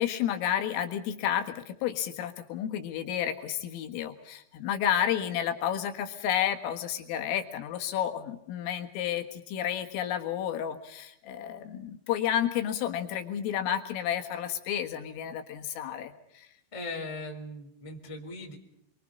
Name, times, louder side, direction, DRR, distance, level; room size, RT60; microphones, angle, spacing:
voice 1, 0.0-16.5, left 10 dB, 75° left, 6 dB, 4.2 m, -31 dB
voice 2, 16.7-18.6, left 2 dB, 5° left, 2 dB, 3.0 m, -39 dB
29.0 x 24.0 x 5.3 m, 0.74 s
omnidirectional pair, 6.0 m